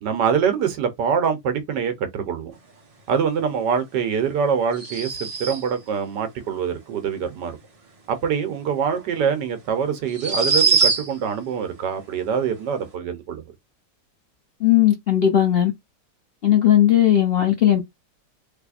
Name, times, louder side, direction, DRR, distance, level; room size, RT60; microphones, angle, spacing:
voice 1, 0.0-2.6 3.1-7.6 8.1-13.4, right 7 dB, 75° right, 1.5 m, -24 dB
sound 1, 4.7-5.8 8.9-9.0 10.1-11.3, right 5 dB, 35° right, 0.6 m, -22 dB
voice 2, 14.6-15.7 16.4-17.8, left 11 dB, 65° left, 0.5 m, -17 dB
3.4 x 3.2 x 2.4 m
omnidirectional pair, 1.9 m